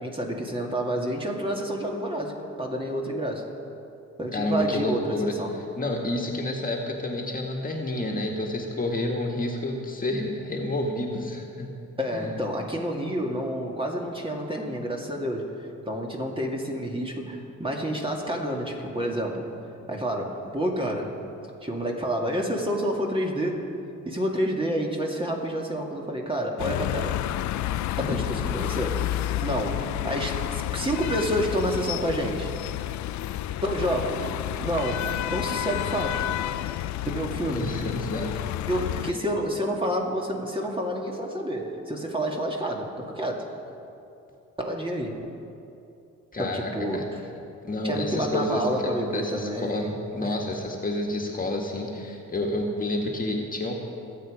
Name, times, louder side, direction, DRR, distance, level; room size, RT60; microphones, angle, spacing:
voice 1, 0.0-3.5 4.2-5.6 12.0-15.5 15.8-19.5 19.9-21.1 21.6-23.7 24.1-27.2 28.0-32.5 33.6-36.3 37.1-37.7 38.7-43.5 44.6-45.2 46.4-47.2 47.8-49.9 50.2-50.3, equal, 15° right, 0 dB, 2.4 m, -29 dB
voice 2, 4.3-11.7 12.1-12.3 28.0-28.3 28.5-28.6 37.5-38.3 39.1-39.2 46.3-47.1 47.6-53.7, left 1 dB, 30° left, 1 dB, 1.9 m, -29 dB
sound 1, 26.6-39.1, left 14 dB, 70° left, 0.5 m, -30 dB
25.5 x 8.6 x 5.1 m, 2.7 s
cardioid pair, 90°, 30 cm